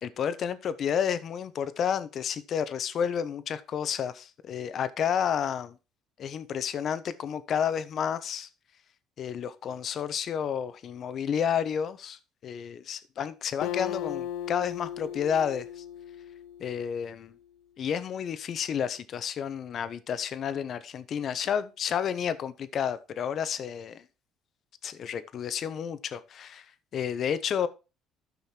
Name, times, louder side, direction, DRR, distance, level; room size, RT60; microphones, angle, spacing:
voice 1, 0.0-5.7 6.2-8.5 9.2-15.8 16.6-17.3 17.8-24.0 24.8-26.7 26.9-27.7, left 8 dB, 55° left, 1.0 m, -31 dB
Acoustic guitar, 13.6-17.2, left 10 dB, 75° left, 0.5 m, -37 dB
13.0 x 5.6 x 4.5 m
supercardioid pair, 80°, 0 cm